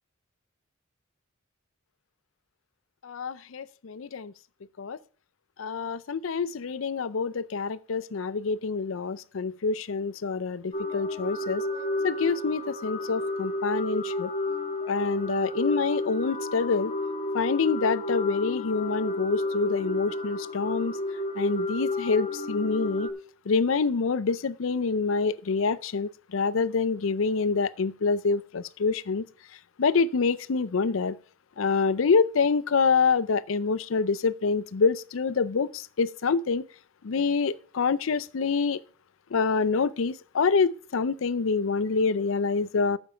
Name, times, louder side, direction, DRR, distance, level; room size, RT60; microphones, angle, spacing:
voice 1, 3.0-4.3 4.8-5.0 5.6-11.6 12.0-14.3 14.9-16.9 17.3-20.9 21.4-23.1 23.5-29.2 29.8-31.2 31.6-36.6 37.0-38.8 39.3-43.0, left 4 dB, 75° left, 0.5 m, -26 dB
sound 1, 10.7-23.1, left 1 dB, 30° left, 1.2 m, -31 dB
8.7 x 7.2 x 5.5 m
head